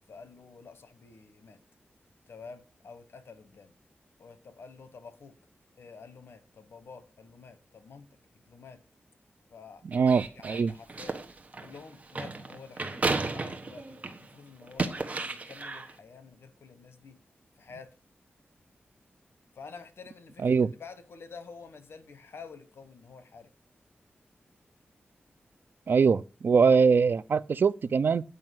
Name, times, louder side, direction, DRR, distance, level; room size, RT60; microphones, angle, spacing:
voice 1, 0.1-1.6 2.3-3.7 4.2-5.3 5.8-8.1 8.5-8.8 9.5-11.2 11.6-17.2 17.6-17.9 19.5-23.5, left 5 dB, 80° left, 1.2 m, -49 dB
voice 2, 9.8-10.7 20.4-20.7 25.9-28.2, right 5 dB, 55° right, 0.4 m, -23 dB
sound 1, 9.9-14.3 14.6-15.9, right 3 dB, 35° right, 1.2 m, -33 dB
9.1 x 5.5 x 7.8 m
wide cardioid pair, 135°, 4 cm